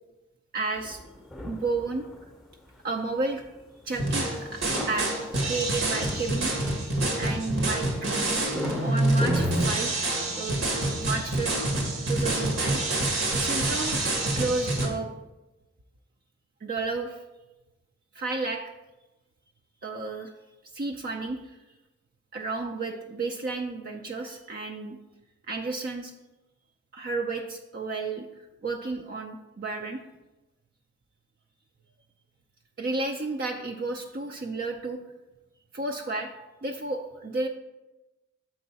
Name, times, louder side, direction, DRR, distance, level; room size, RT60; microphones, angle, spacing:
voice 1, 0.5-1.0 1.4-2.1 2.8-3.4 3.8-4.6 4.9-6.5 7.2-8.1 8.8-10.0 10.4-10.6 11.0-11.5 12.1-12.8 13.4-14.0 14.3-15.1 16.6-17.2 18.1-18.6 19.8-20.3 20.7-21.5 22.3-25.0 25.5-26.1 26.9-28.3 28.6-30.0 32.8-35.0 35.7-36.3 36.6-37.5, right 3 dB, 45° right, 2 dB, 0.4 m, -32 dB
sound 1, 0.8-9.8, left 1 dB, ahead, 0.7 m, -39 dB
sound 2, 3.9-14.9, right 2 dB, 90° right, 1.5 m, -27 dB
7.5 x 4.7 x 4.1 m, 1.0 s
head